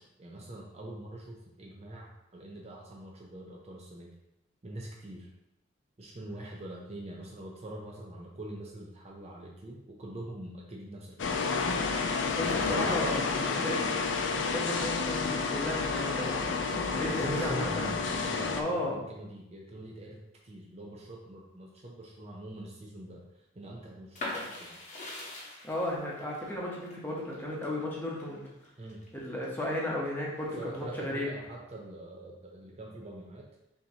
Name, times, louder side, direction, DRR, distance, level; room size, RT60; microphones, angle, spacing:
voice 1, 0.0-4.1 4.6-5.3 6.0-11.3 17.1-23.2 23.5-24.8 28.8-29.0 30.5-33.5, right 1 dB, 30° right, -2 dB, 0.5 m, -43 dB
sound 1, 11.2-18.6, left 4 dB, 65° left, 0.4 m, -30 dB
voice 2, 12.3-13.9 14.4-16.5 16.9-17.9 18.6-19.0 25.6-28.4 29.1-31.3, left 1 dB, 10° left, -4 dB, 0.8 m, -34 dB
sound 2, 24.1-29.8 30.2-31.1, left 2 dB, 40° left, 1.0 m, -42 dB
5.7 x 2.8 x 2.8 m, 0.90 s
head